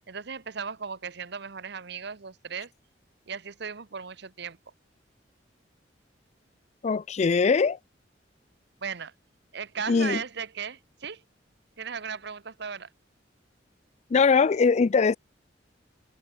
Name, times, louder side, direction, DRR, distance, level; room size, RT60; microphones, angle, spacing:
voice 1, 0.0-2.7 3.3-4.6 8.8-9.1 9.5-11.2 11.8-12.9, right 6 dB, 65° right, 1.1 m, -36 dB
voice 2, 6.8-7.8 9.9-10.2 14.1-15.2, left 5 dB, 40° left, 0.4 m, -21 dB
head